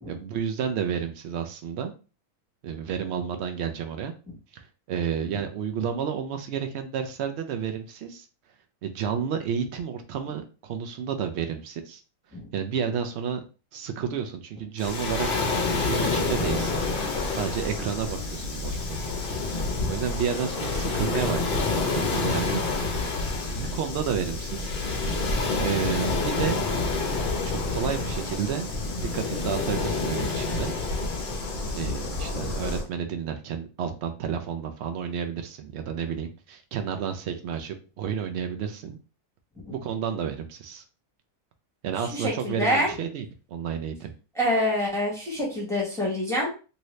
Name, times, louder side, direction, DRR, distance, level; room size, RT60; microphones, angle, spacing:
voice 1, 0.1-1.9 2.6-4.1 4.5-8.2 8.8-12.0 12.5-13.4 13.7-15.3 15.6-16.8 17.3-19.1 19.9-22.6 23.5-24.7 25.6-26.7 27.4-30.7 31.7-39.0 39.8-40.8 41.8-44.1, right 7 dB, 70° right, 6 dB, 0.6 m, -31 dB
Waves surf, 14.8-32.8, left 3 dB, 50° left, 0.7 m, -28 dB
voice 2, 42.0-42.9 44.4-46.5, left 1 dB, ahead, -4 dB, 1.0 m, -26 dB
2.9 x 2.7 x 3.1 m, 0.34 s
omnidirectional pair, 1.6 m